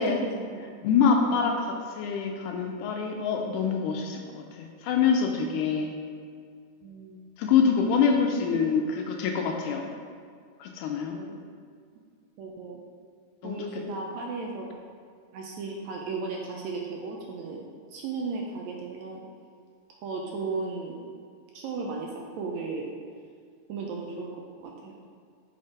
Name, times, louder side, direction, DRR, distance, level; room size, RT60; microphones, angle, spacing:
voice 1, 0.0-0.7 5.5-5.6 6.8-7.3 8.6-8.8 11.1-11.4 12.4-12.8 13.4-14.8 15.3-17.7 17.9-19.2 19.9-21.0 21.5-22.9 23.7-24.3 24.6-24.9, right 3 dB, 75° right, 0 dB, 1.8 m, -35 dB
voice 2, 0.8-5.9 7.4-8.8 9.1-9.9 10.6-11.2 13.4-13.6, left 6 dB, 85° left, 2 dB, 2.1 m, -25 dB
6.4 x 4.6 x 4.8 m, 2.1 s
omnidirectional pair, 3.6 m